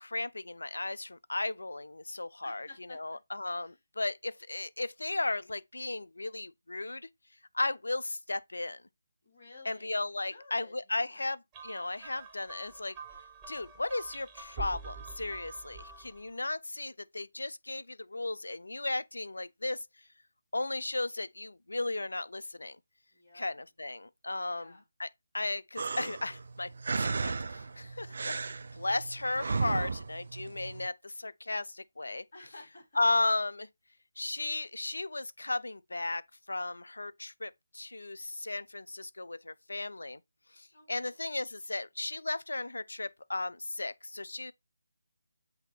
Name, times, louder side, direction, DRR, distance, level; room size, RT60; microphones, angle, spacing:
voice 1, 0.0-7.1 7.5-8.8 9.7-13.0 13.5-19.9 20.5-22.8 23.3-25.1 25.3-28.4 28.7-32.3 33.0-33.7 34.2-36.2 36.5-40.2 40.5-44.5, left 2 dB, 75° left, 0.4 m, -35 dB
voice 2, 2.4-3.2 3.6-3.8 9.2-10.0 10.3-11.3 23.1-23.4 24.5-24.8 32.3-33.0 40.7-41.1, left 2 dB, 40° left, 2.5 m, -53 dB
sound 1, 11.5-16.3, right 3 dB, 15° right, 0.8 m, -46 dB
sound 2, 25.8-30.9, right 4 dB, 55° right, 0.4 m, -35 dB
7.9 x 2.7 x 2.2 m
figure-of-eight pair, 155°, 0 cm